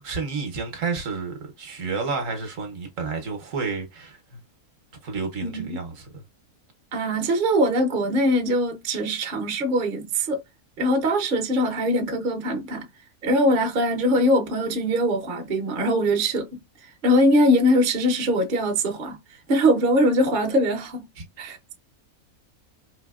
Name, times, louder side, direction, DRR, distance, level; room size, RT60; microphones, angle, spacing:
voice 1, 0.0-4.4 5.0-6.2 21.2-21.3, right 4 dB, 60° right, 1.1 m, -30 dB
voice 2, 6.9-10.4 10.8-12.9 13.2-19.2 19.5-21.0 21.4-21.7, equal, 45° right, 0.7 m, -22 dB
4.0 x 2.7 x 2.3 m
omnidirectional pair, 1.6 m